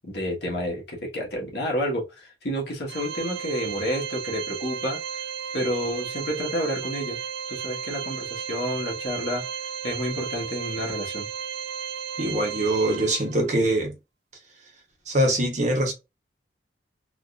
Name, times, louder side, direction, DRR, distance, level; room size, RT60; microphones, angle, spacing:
voice 1, 0.0-5.2 5.5-7.2 7.5-9.4 9.8-11.3, equal, 55° left, 1.4 m, -30 dB
Organ, 2.9-13.5, right 8 dB, 60° right, 0.4 m, -34 dB
voice 2, 12.2-13.9 15.1-15.9, right 1 dB, 40° right, 1.0 m, -23 dB
3.8 x 2.6 x 2.4 m
head